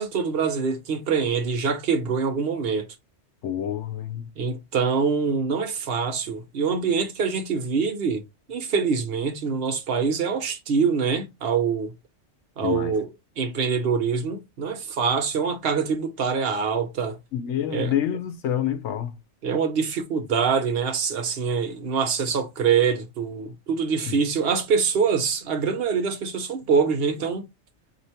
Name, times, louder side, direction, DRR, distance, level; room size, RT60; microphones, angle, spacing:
voice 1, 0.0-2.9 4.4-8.2 8.5-11.9 12.6-13.1 13.4-17.2 17.7-17.9 19.4-27.5, right 5 dB, 60° right, 1.0 m, -24 dB
voice 2, 3.4-4.3 12.6-13.0 17.3-19.2 24.1-24.2, left 10 dB, 85° left, 1.0 m, -27 dB
4.4 x 2.9 x 2.7 m
omnidirectional pair, 1.2 m